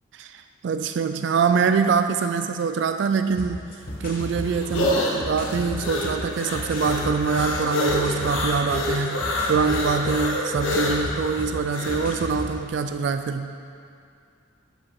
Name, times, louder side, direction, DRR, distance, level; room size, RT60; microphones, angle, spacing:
voice 1, 0.2-3.6 4.0-13.5, right 5 dB, 60° right, 9 dB, 0.3 m, -24 dB
sound 1, 3.3-12.6, equal, 45° left, 1.0 m, -35 dB
sound 2, 3.8-12.1, left 1 dB, 80° left, 1.3 m, -27 dB
11.5 x 5.1 x 4.7 m, 2.3 s
head